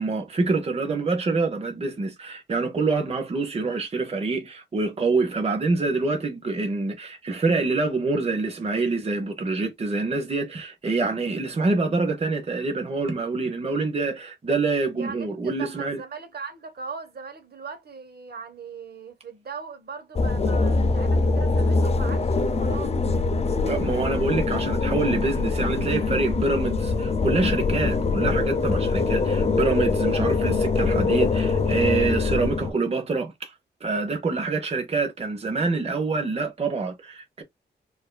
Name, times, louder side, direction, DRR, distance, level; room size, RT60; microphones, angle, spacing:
voice 1, 0.0-16.0 23.6-33.5 33.8-37.4, right 3 dB, 35° right, 0.8 m, -26 dB
voice 2, 14.9-22.9, right 5 dB, 60° right, 1.0 m, -39 dB
sound 1, 20.1-32.7, left 3 dB, 35° left, 0.5 m, -23 dB
4.5 x 2.6 x 2.2 m
wide cardioid pair, 105°, 18 cm